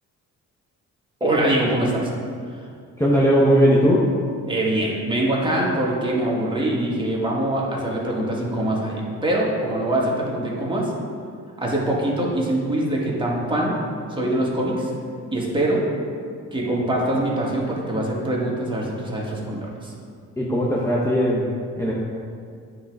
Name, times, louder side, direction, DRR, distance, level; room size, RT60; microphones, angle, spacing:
voice 1, 1.2-2.1 4.5-10.9 11.6-13.8 14.1-14.9 15.3-15.8 16.5-19.9, right 1 dB, 15° right, -4 dB, 1.7 m, -23 dB
voice 2, 3.0-4.1 20.4-21.5 21.8-21.9, equal, 10° left, -6 dB, 1.0 m, -18 dB
9.2 x 3.7 x 4.6 m, 2.3 s
cardioid pair, 90°, 30 cm